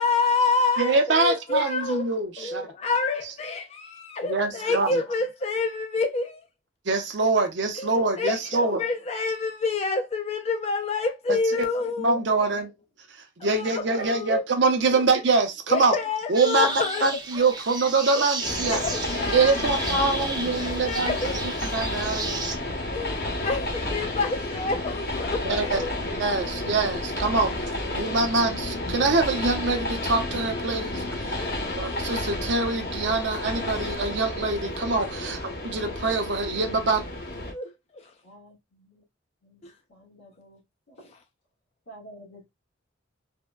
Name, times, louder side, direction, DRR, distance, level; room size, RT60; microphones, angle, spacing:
voice 1, 0.0-2.1 2.4-6.4 7.8-12.2 13.4-14.5 14.9-15.2 15.7-17.1 18.6-21.4 22.9-25.9 31.4-31.7 35.3-35.4 37.5-38.1 39.6-39.7, left 3 dB, 30° left, 0.3 m, -28 dB
voice 2, 0.8-2.7 4.2-5.0 6.9-8.8 11.3-11.7 12.0-12.7 13.4-15.9 16.3-18.8 19.1-21.1 21.7-22.4 25.5-25.8 26.2-31.4 31.8-37.0, right 3 dB, 65° right, 0.6 m, -24 dB
sound 1, 16.3-22.6, right 3 dB, 20° right, 0.5 m, -34 dB
Train, 18.4-37.5, left 1 dB, 50° left, 0.8 m, -31 dB
voice 3, 38.2-39.0 39.4-39.6 39.9-40.6 40.9-41.1 41.9-42.4, right 1 dB, 75° left, 1.6 m, -49 dB
3.4 x 2.1 x 2.2 m
head